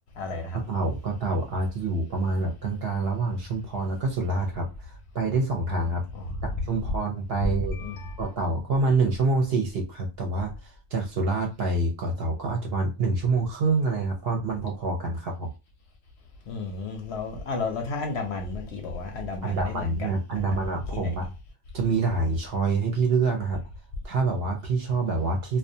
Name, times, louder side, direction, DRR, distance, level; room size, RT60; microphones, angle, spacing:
voice 1, 0.2-0.6 6.1-6.2 7.7-8.2 16.5-20.1 20.3-20.4 20.9-21.2, left 3 dB, 65° left, 0.8 m, -33 dB
voice 2, 0.7-6.0 6.4-7.8 8.2-15.5 19.4-21.3 21.7-23.6 24.0-25.6, right 3 dB, 60° right, 0.7 m, -26 dB
2.3 x 2.2 x 2.6 m
omnidirectional pair, 1.4 m